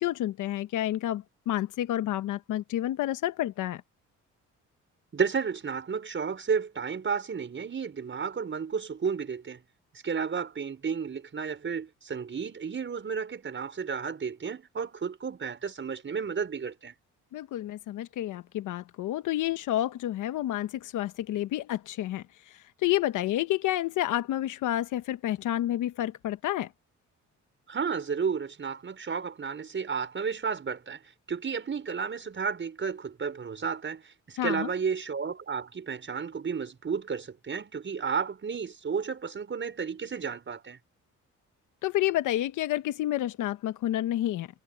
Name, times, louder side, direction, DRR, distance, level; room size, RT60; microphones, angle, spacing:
voice 1, 0.0-3.8 17.3-22.2 22.8-26.7 34.4-34.7 41.8-44.5, left 13 dB, 85° left, 1.1 m, -29 dB
voice 2, 5.1-9.6 10.0-16.9 27.7-40.8, right 6 dB, 40° right, 5.8 m, -32 dB
cardioid pair, 90°, 30 cm